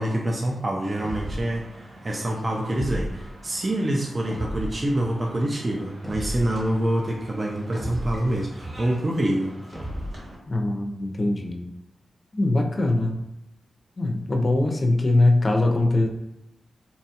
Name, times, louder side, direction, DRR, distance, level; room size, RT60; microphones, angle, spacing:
voice 1, 0.0-9.5, right 1 dB, 40° right, -1 dB, 0.4 m, -26 dB
sound 1, 0.8-10.4, right 1 dB, 70° right, 1.1 m, -45 dB
sound 2, 1.0-1.6 2.7-3.4 4.3-4.9 6.0-6.7 7.7-8.4 9.7-10.4, equal, 5° right, 0.9 m, -33 dB
voice 2, 10.5-11.7 12.3-13.2 14.0-16.1, left 2 dB, 40° left, 2 dB, 0.5 m, -22 dB
2.8 x 2.2 x 2.8 m, 0.86 s
cardioid pair, 55°, 0 cm